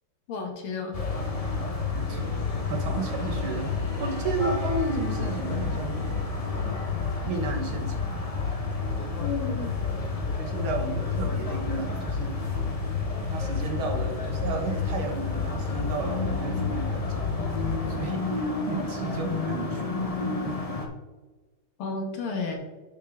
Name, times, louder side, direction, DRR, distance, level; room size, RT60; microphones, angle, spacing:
voice 1, 0.3-1.0 9.2-9.8 21.8-22.6, left 4 dB, 85° left, 3 dB, 2.2 m, -32 dB
sound 1, 0.9-20.8, left 4 dB, 35° left, 0.6 m, -29 dB
voice 2, 1.9-2.4 2.7-6.2 7.3-8.1 10.3-12.4 13.3-17.5 17.9-20.1, right 4 dB, 80° right, 3 dB, 2.1 m, -33 dB
11.0 x 4.7 x 3.6 m, 1.3 s
omnidirectional pair, 2.3 m